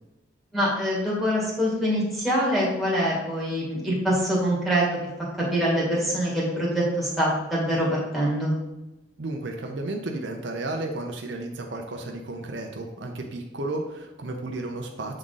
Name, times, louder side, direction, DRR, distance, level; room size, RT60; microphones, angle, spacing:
voice 1, 0.5-4.9 5.5-8.5, equal, ahead, -6 dB, 1.8 m, -24 dB
voice 2, 9.2-15.2, right 2 dB, 70° right, 2 dB, 0.7 m, -33 dB
7.6 x 3.7 x 3.9 m, 0.97 s
head